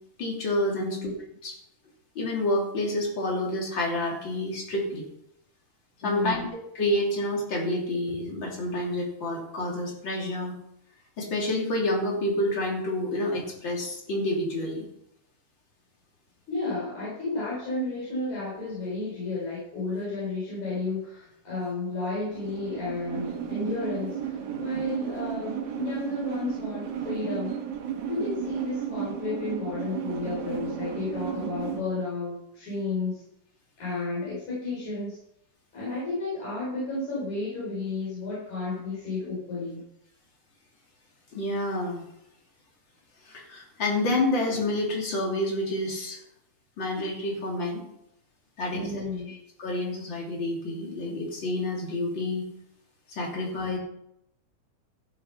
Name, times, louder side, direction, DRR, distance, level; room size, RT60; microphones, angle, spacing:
voice 1, 0.2-1.1 1.4-1.6 2.1-5.1 6.0-6.5 6.7-10.5 11.2-14.8 41.3-42.0 43.2-46.2 46.8-47.8 48.6-52.4 53.1-53.8, left 1 dB, 40° left, -1 dB, 3.3 m, -28 dB
voice 2, 0.8-1.1 6.0-6.5 16.5-27.6 28.1-33.2 33.8-35.2 35.7-39.8 48.7-49.4, left 3 dB, 70° left, -8 dB, 5.7 m, -32 dB
sound 1, 22.3-31.8, right 9 dB, 75° right, 2.5 m, -34 dB
14.5 x 7.1 x 5.7 m, 0.79 s
omnidirectional pair, 3.5 m